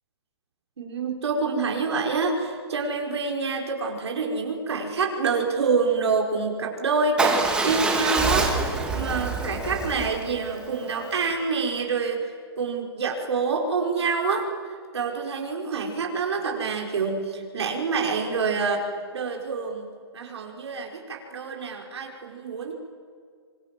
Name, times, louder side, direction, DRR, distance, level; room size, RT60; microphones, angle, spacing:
voice 1, 0.8-14.5 14.9-18.8 19.1-19.8 20.1-22.7, right 4 dB, 75° right, 1 dB, 5.3 m, -27 dB
Motorcycle / Engine starting / Idling, 7.2-11.3, right 3 dB, 5° right, 2.5 m, -26 dB
26.5 x 24.0 x 7.7 m, 2.1 s
hypercardioid pair, 160°, 14 cm